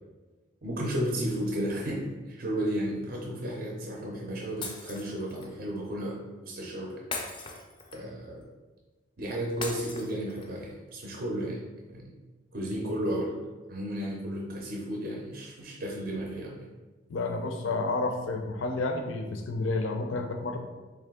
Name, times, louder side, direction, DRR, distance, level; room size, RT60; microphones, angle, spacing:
voice 1, 0.6-6.2 6.4-7.0 7.9-8.4 9.2-11.6 11.9-12.1 12.5-13.4 13.7-16.7, right 1 dB, 45° right, -2 dB, 0.5 m, -33 dB
Shatter, 4.6-5.5 7.1-8.2 9.6-10.6, left 3 dB, 25° left, 0.4 m, -39 dB
voice 2, 17.1-20.6, left 3 dB, 85° left, 5 dB, 0.5 m, -30 dB
3.5 x 2.8 x 3.5 m, 1.3 s
head